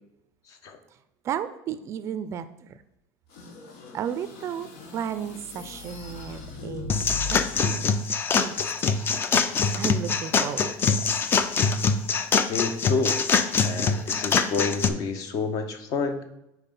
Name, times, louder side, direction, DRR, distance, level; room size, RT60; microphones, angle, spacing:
voice 1, 0.5-0.8 12.5-13.2 13.6-16.2, left 4 dB, 45° left, 8 dB, 0.9 m, -29 dB
voice 2, 1.2-2.8 3.9-6.9 7.3-8.0 8.3-8.9 9.8-11.1, right 8 dB, 35° right, 12 dB, 0.4 m, -34 dB
sound 1, 3.3-7.6, left 4 dB, 80° left, 1.3 m, -39 dB
sound 2, 6.9-14.9, left 5 dB, 25° left, 0.4 m, -24 dB
5.7 x 4.4 x 5.3 m, 0.89 s
cardioid pair, 145°, 8 cm